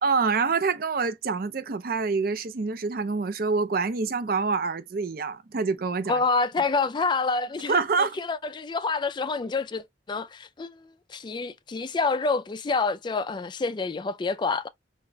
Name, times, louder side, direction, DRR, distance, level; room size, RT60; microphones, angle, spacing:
voice 1, 0.0-6.2 7.7-8.2, right 4 dB, 55° right, 0.5 m, -26 dB
voice 2, 6.1-7.8 8.2-14.7, left 4 dB, 25° left, 0.3 m, -27 dB
4.0 x 3.1 x 2.2 m
head